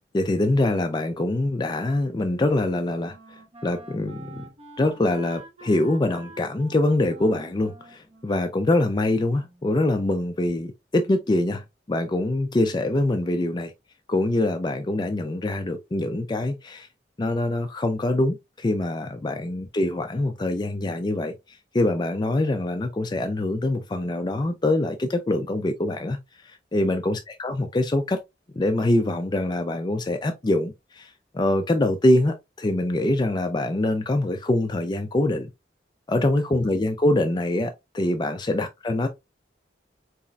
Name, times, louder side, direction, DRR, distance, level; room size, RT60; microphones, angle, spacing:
voice 1, 0.1-4.5 4.8-13.7 14.1-16.9 17.2-28.2 28.5-35.5 36.1-39.1, left 1 dB, 25° left, 0.4 m, -24 dB
Wind instrument woodwind instrument, 3.0-9.8, right 2 dB, 35° right, 0.9 m, -47 dB
4.1 x 4.0 x 2.3 m
head